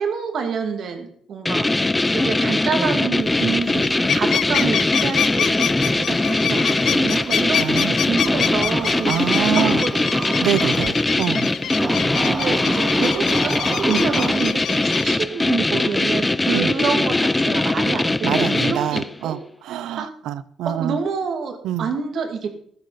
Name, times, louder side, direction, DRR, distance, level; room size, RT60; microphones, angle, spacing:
voice 1, 0.0-1.8 2.1-10.5 12.2-19.4 19.7-20.1 20.6-22.6, right 5 dB, 65° right, 2.3 m, -28 dB
sound 1, 1.5-19.2, left 2 dB, 15° left, 0.5 m, -21 dB
sound 2, 3.3-3.5 3.8-15.2, left 9 dB, 65° left, 0.5 m, -27 dB
voice 2, 7.6-7.9 9.1-9.8 10.4-11.5 13.9-14.0 16.5-16.7 18.2-21.0 21.6-21.9, right 11 dB, 85° right, 0.6 m, -25 dB
sound 3, 8.1-10.9 11.8-14.4, right 4 dB, 40° right, 0.9 m, -30 dB
15.0 x 13.0 x 4.1 m
cardioid pair, 90°, 0 cm